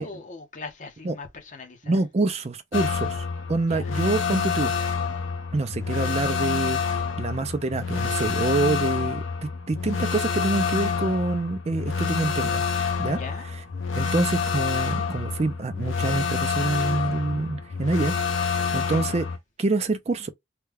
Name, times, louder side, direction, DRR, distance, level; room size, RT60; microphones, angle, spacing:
voice 1, 0.0-2.0 3.7-3.9 13.2-13.4 18.7-19.1, left 3 dB, 40° left, 0.9 m, -40 dB
voice 2, 1.9-4.7 5.5-12.6 13.0-13.2 14.0-19.3 19.6-20.3, right 3 dB, 30° right, 0.4 m, -26 dB
sound 1, 2.7-19.4, left 5 dB, 80° left, 0.8 m, -27 dB
3.3 x 2.2 x 3.3 m
head